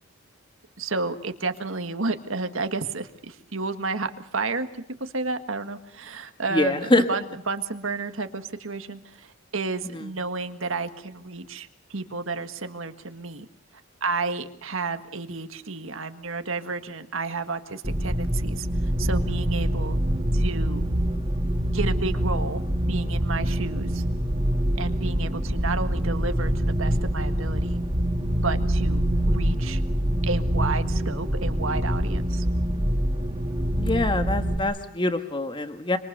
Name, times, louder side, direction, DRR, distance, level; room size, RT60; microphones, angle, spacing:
voice 1, 0.8-13.5 14.0-18.7 19.0-20.0 20.3-20.9 21.7-22.6 22.9-24.0 24.8-27.8 28.4-29.8 30.2-32.5, right 3 dB, 70° right, 8 dB, 1.7 m, -31 dB
voice 2, 6.5-7.0 9.9-10.0 33.7-36.0, left 2 dB, 25° left, 7 dB, 1.5 m, -24 dB
sound 1, 17.8-34.6, equal, 20° right, 2.9 m, -25 dB
26.0 x 25.5 x 6.8 m, 0.72 s
head